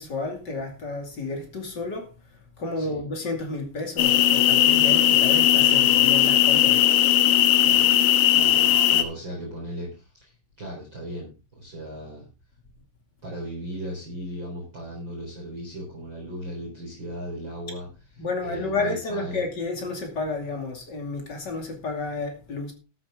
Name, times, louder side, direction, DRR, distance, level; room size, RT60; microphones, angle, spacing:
voice 1, 0.0-2.1 2.6-6.9 18.2-22.7, left 3 dB, 40° left, 1.6 m, -31 dB
sound 1, 4.0-9.0, left 12 dB, 80° left, 3.6 m, -18 dB
voice 2, 8.3-12.3 13.2-17.9 18.4-19.4, equal, 25° right, 4.3 m, -37 dB
13.5 x 10.5 x 3.7 m
omnidirectional pair, 5.9 m